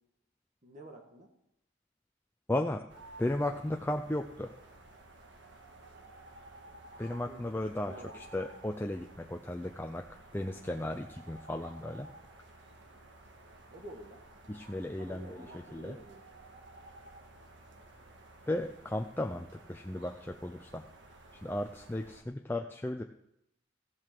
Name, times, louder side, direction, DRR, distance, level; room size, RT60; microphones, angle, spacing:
voice 1, 0.6-1.3 7.2-7.5 7.9-8.2 13.7-14.2 14.9-16.2, right 1 dB, 40° right, 1 dB, 1.5 m, -49 dB
voice 2, 2.5-2.8 3.2-4.5 7.0-10.0 10.3-12.1 14.5-16.0 18.5-20.8 21.4-23.0, left 1 dB, 10° left, 4 dB, 0.5 m, -35 dB
sound 1, 2.9-22.2, right 2 dB, 70° right, 1.7 m, -54 dB
15.5 x 7.8 x 6.0 m, 0.81 s
head